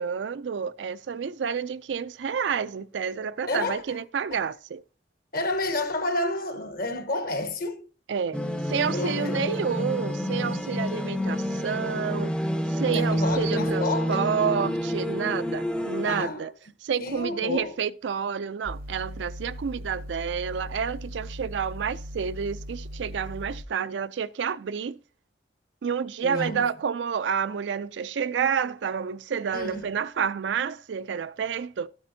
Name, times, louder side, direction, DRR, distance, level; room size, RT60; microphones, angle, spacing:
voice 1, 0.0-4.8 8.1-8.4 8.7-12.4 12.7-16.5 16.8-25.0 25.8-31.9, right 7 dB, 85° right, 0.4 m, -29 dB
voice 2, 3.5-4.0 4.3-4.4 5.3-7.9 8.9-9.5 12.9-14.3 16.0-16.5 17.0-17.8 26.2-26.7 29.5-29.9, left 2 dB, 55° left, 1.1 m, -30 dB
sound 1, 8.3-16.3, equal, 5° left, 0.5 m, -28 dB
sound 2, 18.7-23.6, equal, 55° right, 0.7 m, -39 dB
12.5 x 8.5 x 2.7 m
head